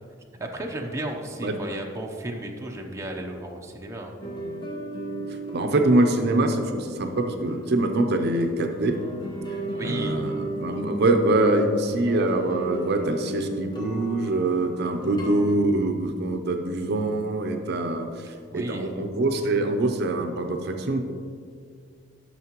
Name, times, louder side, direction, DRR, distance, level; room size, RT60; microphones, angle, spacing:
voice 1, 0.4-4.2 9.7-10.4 18.5-18.9, right 1 dB, 15° right, 1 dB, 0.6 m, -34 dB
sound 1, 4.2-15.5, right 1 dB, 20° left, 1.0 m, -36 dB
voice 2, 5.3-9.0 9.5-21.1, right 2 dB, 55° right, 5 dB, 0.5 m, -24 dB
11.0 x 6.4 x 3.0 m, 2.2 s
head